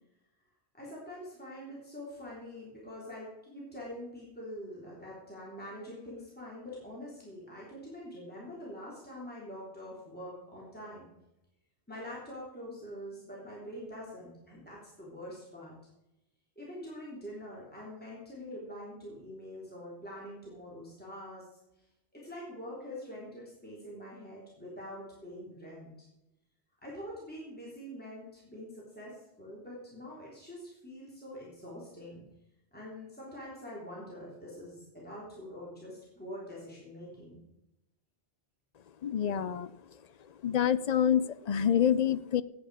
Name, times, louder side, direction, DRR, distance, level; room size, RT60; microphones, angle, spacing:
voice 1, 0.8-11.1 11.9-15.7 16.6-21.5 22.1-26.1 26.8-32.2 32.7-37.4, equal, 10° left, -6 dB, 3.5 m, -45 dB
voice 2, 39.0-39.7 40.4-42.4, left 9 dB, 50° left, 16 dB, 0.5 m, -27 dB
16.5 x 8.8 x 4.9 m, 0.93 s
omnidirectional pair, 1.1 m